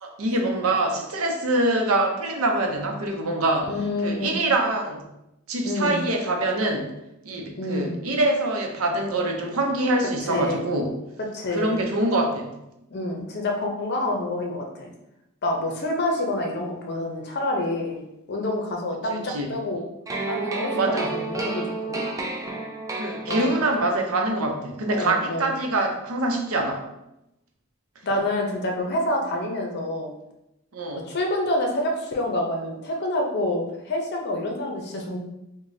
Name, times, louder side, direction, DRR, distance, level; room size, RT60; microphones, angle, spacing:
voice 1, 0.0-3.7 4.0-5.1 5.5-6.9 7.2-11.0 11.5-12.6 19.1-19.5 20.7-21.2 22.9-26.9 30.7-31.0, right 2 dB, 85° right, 2 dB, 0.6 m, -25 dB
voice 2, 3.7-4.4 5.6-6.1 7.6-8.0 10.3-10.7 11.3-11.8 12.9-14.9 15.4-18.0 18.3-19.8 20.3-22.0 23.3-23.4 24.9-25.5 28.0-30.1 30.9-35.2, left 1 dB, 50° left, 1 dB, 0.7 m, -27 dB
sound 1, 20.1-24.2, right 3 dB, 15° right, 0.3 m, -30 dB
4.8 x 2.2 x 2.7 m, 0.88 s
head